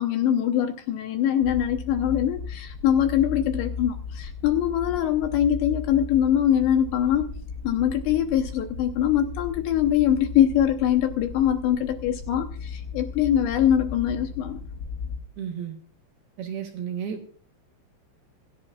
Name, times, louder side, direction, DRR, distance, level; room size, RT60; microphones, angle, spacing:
voice 1, 0.0-7.3 7.6-14.6, left 10 dB, 75° left, 6 dB, 2.7 m, -23 dB
sound 1, 1.4-15.2, left 5 dB, 35° left, 1.8 m, -36 dB
voice 2, 15.4-15.8 16.4-17.3, right 8 dB, 70° right, 4 dB, 2.5 m, -32 dB
27.0 x 11.0 x 2.4 m, 0.43 s
omnidirectional pair, 5.8 m